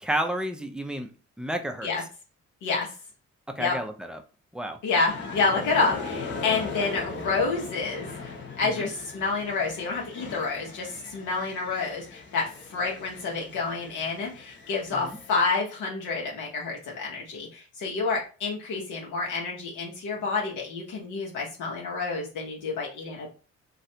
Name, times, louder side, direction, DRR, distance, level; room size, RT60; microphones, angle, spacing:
voice 1, 0.0-1.1 1.4-1.9 3.6-4.2 4.5-4.8 8.6-8.9 14.9-15.2, right 1 dB, 5° right, 4 dB, 0.5 m, -31 dB
voice 2, 4.8-23.3, left 4 dB, 80° left, -2 dB, 1.0 m, -29 dB
sound 1, 5.1-15.4, left 4 dB, 40° left, 0.9 m, -39 dB
3.1 x 2.5 x 2.8 m, 0.35 s
cardioid pair, 90°, 30 cm